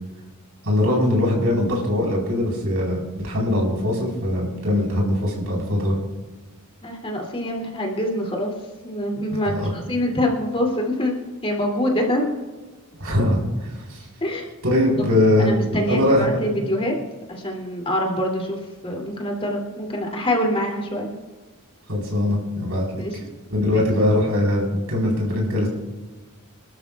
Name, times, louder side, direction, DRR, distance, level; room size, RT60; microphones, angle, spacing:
voice 1, 0.6-6.0 9.5-9.7 13.0-14.1 14.6-15.5 15.8-16.4 21.9-23.2 23.5-24.6 24.9-25.7, left 1 dB, 70° right, -2 dB, 4.4 m, -21 dB
voice 2, 6.8-8.5 8.8-11.1 11.4-12.3 14.2-14.5 15.4-16.9 17.3-21.1 23.0-23.2 23.7-23.8, left 1 dB, 25° left, 0 dB, 2.9 m, -25 dB
27.0 x 12.5 x 2.4 m, 1.3 s
head